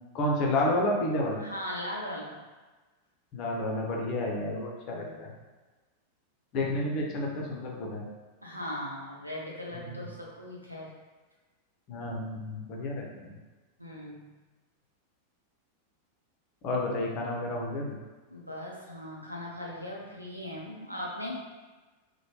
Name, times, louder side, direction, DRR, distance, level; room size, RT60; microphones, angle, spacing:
voice 1, 0.1-1.4 3.3-5.3 6.5-8.0 9.7-10.1 11.9-13.4 16.6-17.9, left 1 dB, 40° left, -1 dB, 0.6 m, -30 dB
voice 2, 1.4-2.4 4.8-5.4 8.4-10.9 13.8-14.3 18.3-21.4, left 1 dB, 90° right, -4 dB, 0.6 m, -39 dB
3.1 x 2.2 x 3.0 m, 1.2 s
figure-of-eight pair, 90°, 0 cm